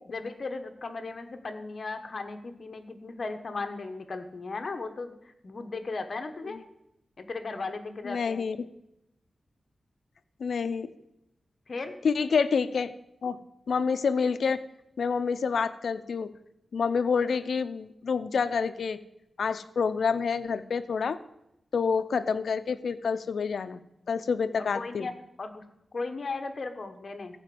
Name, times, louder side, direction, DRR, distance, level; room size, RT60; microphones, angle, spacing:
voice 1, 0.1-5.1 5.4-6.6 7.2-8.5 11.7-11.9 24.6-25.1 25.4-25.6 25.9-27.4, left 3 dB, 50° left, 7 dB, 1.2 m, -36 dB
voice 2, 8.0-8.6 10.4-10.9 12.0-12.9 13.2-13.4 13.7-14.6 15.0-16.3 16.7-19.0 19.4-21.2 21.7-23.8 24.1-25.1, left 5 dB, 85° left, 12 dB, 0.6 m, -28 dB
14.5 x 5.1 x 7.7 m, 0.84 s
wide cardioid pair, 125°, 0 cm